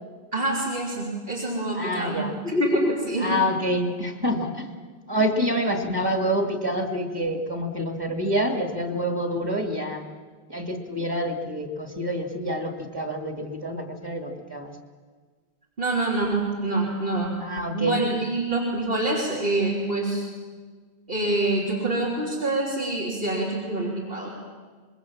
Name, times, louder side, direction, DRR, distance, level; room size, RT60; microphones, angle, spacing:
voice 1, 0.3-3.3 15.8-17.3 17.7-20.3 21.1-24.3, right 2 dB, 60° right, -5 dB, 3.6 m, -26 dB
voice 2, 1.7-2.4 3.2-4.7 5.1-10.0 10.5-14.7 17.4-18.0, equal, 20° right, 4 dB, 2.2 m, -27 dB
26.0 x 21.5 x 7.3 m, 1.5 s
omnidirectional pair, 1.1 m